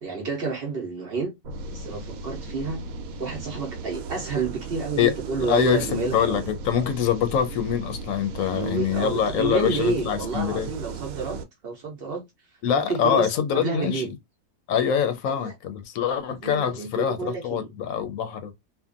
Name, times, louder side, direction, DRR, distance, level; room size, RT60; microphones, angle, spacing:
voice 1, 0.0-1.3 1.7-2.8 3.2-6.4 8.5-12.2 12.9-14.1 15.4-15.5 16.3-17.7, right 4 dB, 55° right, 0.8 m, -30 dB
sound 1, 1.4-11.4, right 4 dB, 80° right, 1.0 m, -36 dB
voice 2, 5.4-10.7 12.6-14.0 14.7-18.5, left 8 dB, 75° left, 1.0 m, -24 dB
2.7 x 2.4 x 2.4 m
omnidirectional pair, 1.5 m